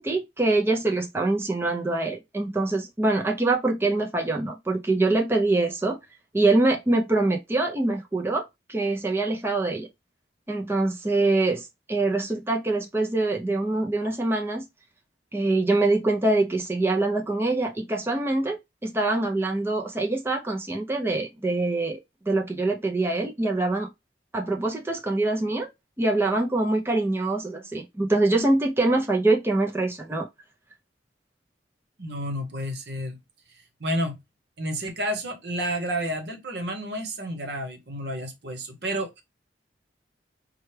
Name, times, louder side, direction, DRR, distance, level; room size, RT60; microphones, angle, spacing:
voice 1, 0.0-6.0 6.3-8.4 8.7-9.9 10.5-14.6 15.3-22.0 22.3-23.9 24.3-25.7 26.0-30.3, right 2 dB, 15° right, 0.5 m, -24 dB
voice 2, 32.0-33.2 33.8-34.2 34.6-39.2, equal, 65° right, 1.0 m, -30 dB
4.4 x 2.3 x 3.2 m
head